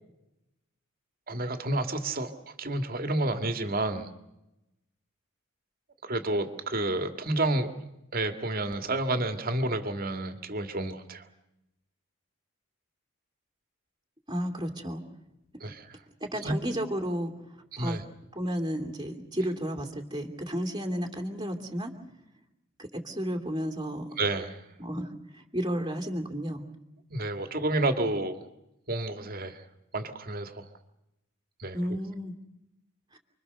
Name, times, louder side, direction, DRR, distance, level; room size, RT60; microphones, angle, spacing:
voice 1, 1.3-2.3 2.6-4.1 6.0-7.8 8.1-11.3 15.6-16.0 16.4-16.6 17.7-18.0 24.2-24.6 27.1-28.4 28.9-29.6 29.9-30.7 31.6-31.8, right 2 dB, 45° right, 7 dB, 2.3 m, -30 dB
voice 2, 14.3-15.0 16.2-17.3 17.8-18.0 18.3-21.9 22.8-24.1 24.8-25.1 25.3-26.6 31.7-32.3 33.1-33.2, equal, 20° right, 3 dB, 2.7 m, -32 dB
29.5 x 23.0 x 6.8 m, 0.89 s
head